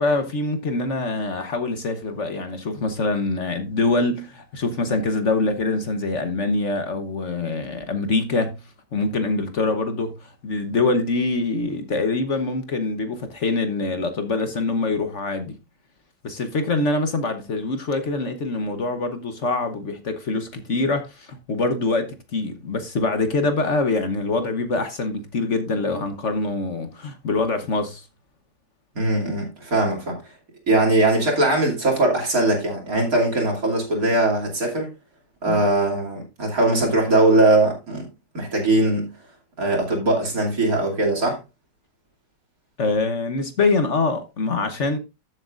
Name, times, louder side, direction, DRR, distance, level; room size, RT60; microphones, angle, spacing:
voice 1, 0.0-8.6 8.9-15.6 16.2-28.1 35.4-35.7 42.8-45.0, left 3 dB, 50° left, 1.3 m, -24 dB
voice 2, 28.9-30.2 30.7-34.9 35.4-38.1 38.3-39.1 39.6-41.4, right 2 dB, 60° right, 3.3 m, -20 dB
13.5 x 7.7 x 2.5 m
omnidirectional pair, 1.7 m